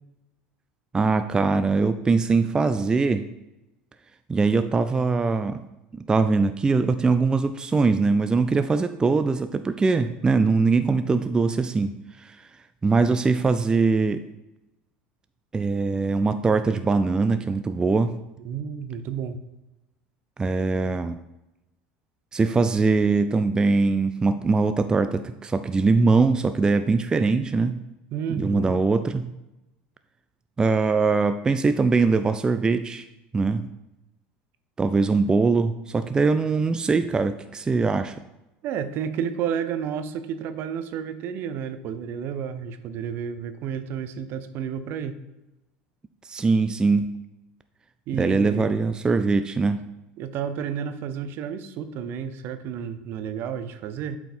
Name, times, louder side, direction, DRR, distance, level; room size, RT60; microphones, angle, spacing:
voice 1, 0.9-3.2 4.3-5.6 6.0-12.4 12.8-14.2 15.5-18.2 20.4-21.2 22.3-27.8 28.4-29.3 30.6-33.0 33.3-33.7 34.8-38.2 46.3-47.0 48.2-49.8, right 4 dB, 15° right, 10 dB, 0.3 m, -22 dB
voice 2, 18.4-19.4 28.1-28.8 38.6-45.2 48.1-48.8 50.2-54.2, right 8 dB, 55° right, 11 dB, 0.7 m, -31 dB
8.1 x 4.5 x 4.4 m, 0.97 s
supercardioid pair, 100°, 4 cm